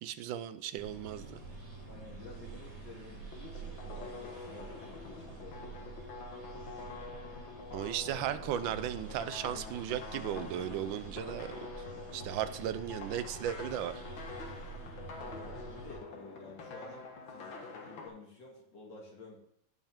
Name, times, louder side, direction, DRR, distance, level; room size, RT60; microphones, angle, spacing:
voice 1, 0.0-1.4 7.7-11.7 12.1-14.0, right 11 dB, 80° right, 12 dB, 1.4 m, -36 dB
sound 1, 0.8-16.0, right 3 dB, 55° right, 4.6 m, -47 dB
voice 2, 1.9-6.0 15.1-19.4, left 2 dB, 65° left, -2 dB, 2.7 m, -52 dB
sound 2, 3.3-18.1, left 4 dB, 90° left, 2.2 m, -46 dB
16.0 x 5.6 x 3.5 m, 0.72 s
omnidirectional pair, 2.1 m